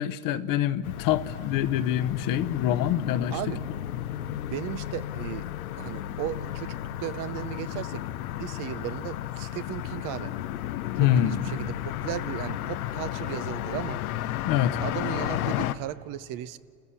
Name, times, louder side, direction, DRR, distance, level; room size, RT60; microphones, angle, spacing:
voice 1, 0.0-3.4 11.0-11.4 14.4-14.8, left 11 dB, 50° left, 1.0 m, -25 dB
sound 1, 0.8-15.7, left 13 dB, 85° left, 0.8 m, -33 dB
voice 2, 3.3-3.6 4.3-5.5 5.7-8.0 8.4-10.3 11.0-14.0 14.8-16.6, right 13 dB, 50° right, 0.8 m, -36 dB
29.5 x 14.0 x 7.1 m
hypercardioid pair, 100°, 42 cm